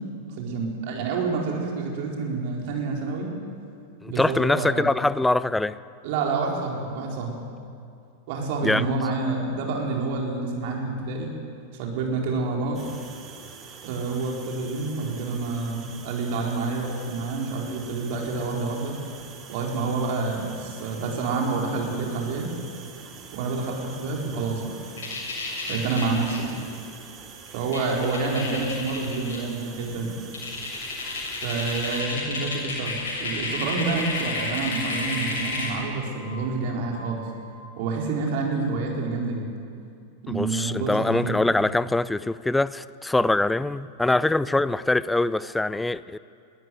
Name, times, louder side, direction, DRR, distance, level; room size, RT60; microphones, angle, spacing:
voice 1, 0.2-3.3 4.0-4.9 6.0-7.4 8.3-11.3 11.7-12.8 13.8-19.0 19.5-22.5 23.3-24.7 25.7-26.5 27.5-30.2 31.4-37.3 37.8-39.5 40.2-41.4, right 3 dB, 50° right, -1 dB, 4.5 m, -28 dB
voice 2, 4.0-5.8 8.6-8.9 40.3-46.2, left 2 dB, 5° left, 18 dB, 0.5 m, -23 dB
sound 1, 12.7-32.0, right 6 dB, 30° right, 2.9 m, -45 dB
sound 2, 25.0-26.4 27.5-27.6 27.7-29.4 29.8-29.9 30.3-35.8, left 3 dB, 65° left, 6.8 m, -31 dB
Glass, 30.9-37.7, equal, 80° right, 2.1 m, -47 dB
22.5 x 14.0 x 9.5 m, 2.4 s
figure-of-eight pair, 90°, 0 cm